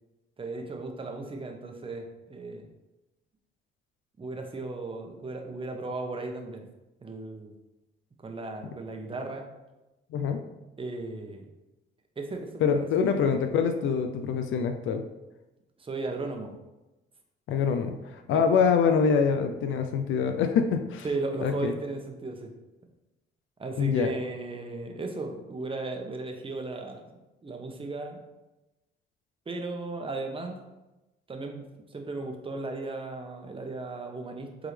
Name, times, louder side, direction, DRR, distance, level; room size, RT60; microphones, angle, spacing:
voice 1, 0.4-2.7 4.2-6.6 7.0-7.5 8.2-9.5 10.8-11.5 12.2-13.4 15.8-16.5 18.3-18.4 21.0-22.5 23.6-28.2 29.5-30.6 31.3-34.7, right 3 dB, 25° right, 3 dB, 1.0 m, -36 dB
voice 2, 10.1-10.4 12.6-15.0 17.5-21.1 21.4-21.7 23.8-24.1, left 6 dB, 75° left, 7 dB, 0.6 m, -25 dB
7.7 x 3.8 x 3.3 m, 1.0 s
cardioid pair, 90°, 20 cm